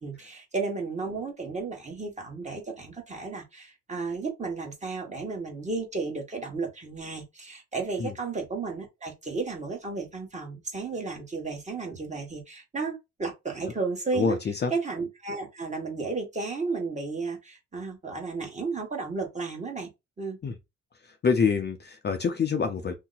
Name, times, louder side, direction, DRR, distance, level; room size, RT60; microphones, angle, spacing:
voice 1, 0.0-14.4 14.7-19.9 20.2-20.4, right 4 dB, 25° right, 1.2 m, -33 dB
voice 2, 14.1-14.7 20.4-20.5 21.0-22.9, left 5 dB, 35° left, 0.6 m, -26 dB
2.8 x 2.1 x 3.9 m
cardioid pair, 90°, 30 cm